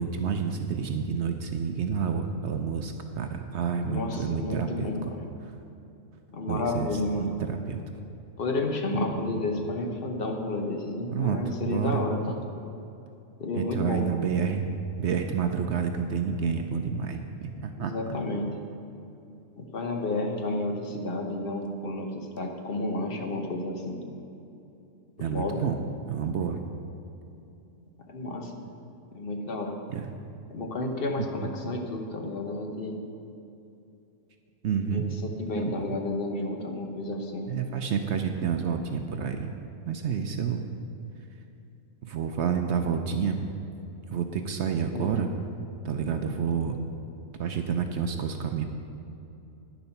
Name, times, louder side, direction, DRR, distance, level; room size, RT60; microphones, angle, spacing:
voice 1, 0.0-5.1 6.5-6.9 7.2-7.8 11.1-11.4 11.7-12.1 13.6-14.6 15.0-18.2 25.2-25.8 26.1-26.6 29.9-30.1 34.6-35.1 35.6-35.7 37.5-39.5 39.9-40.7 42.0-43.4 44.1-45.3 45.8-46.8 47.4-48.6, right 7 dB, 65° right, 6 dB, 0.7 m, -29 dB
voice 2, 3.8-5.3 6.3-7.3 8.4-12.4 13.4-14.1 17.8-18.6 19.6-24.1 25.2-25.7 28.1-28.7 29.1-29.8 30.5-33.0 34.9-37.6 44.9-45.1, left 2 dB, 45° left, 3 dB, 1.1 m, -31 dB
10.5 x 7.0 x 5.7 m, 2.8 s
omnidirectional pair, 1.6 m